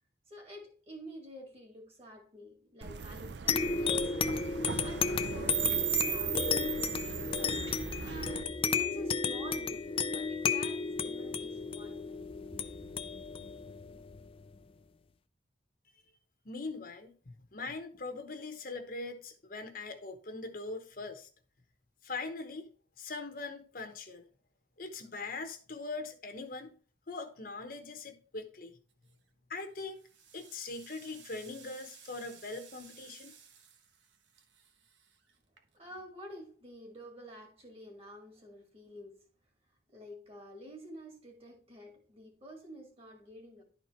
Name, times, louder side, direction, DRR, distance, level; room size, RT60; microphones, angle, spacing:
voice 1, 0.3-4.1 4.8-7.7 7.9-12.2 12.5-12.9 35.7-39.3 39.9-43.6, equal, 35° right, 2.3 m, -49 dB
sound 1, 2.8-8.4, right 9 dB, 65° right, 0.5 m, -36 dB
sound 2, 3.5-14.6, left 5 dB, 30° left, 0.4 m, -33 dB
voice 2, 16.4-17.1 17.5-21.3 22.0-22.7 23.0-24.2 24.8-26.7 27.1-28.8 29.5-30.0 30.3-33.3, left 3 dB, 50° left, 1.0 m, -41 dB
sound 3, 28.9-29.3 29.8-36.0, right 7 dB, 85° right, 1.2 m, -57 dB
11.5 x 4.4 x 4.4 m
head